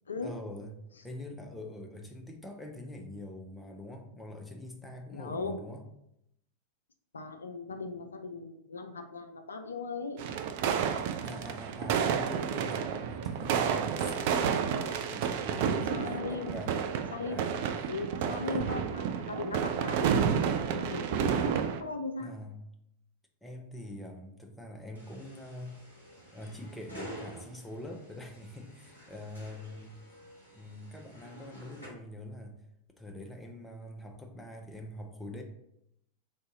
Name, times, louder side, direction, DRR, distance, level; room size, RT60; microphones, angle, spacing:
voice 1, 0.2-5.8 11.2-14.7 15.1-16.9 17.3-17.9 18.3-18.8 22.2-22.7 23.4-25.8 26.3-30.0 30.6-32.6 33.0-35.4, left 1 dB, 5° left, 2 dB, 0.6 m, -44 dB
voice 2, 5.1-5.6 7.1-10.2 15.9-16.5 17.1-17.4 17.9-22.3, left 3 dB, 70° left, 6 dB, 0.3 m, -38 dB
sound 1, 10.2-21.8, right 7 dB, 50° right, 0.3 m, -30 dB
sound 2, 25.0-31.9, right 1 dB, 90° right, 1.4 m, -50 dB
3.7 x 2.6 x 3.7 m, 0.80 s
figure-of-eight pair, 90°, 0 cm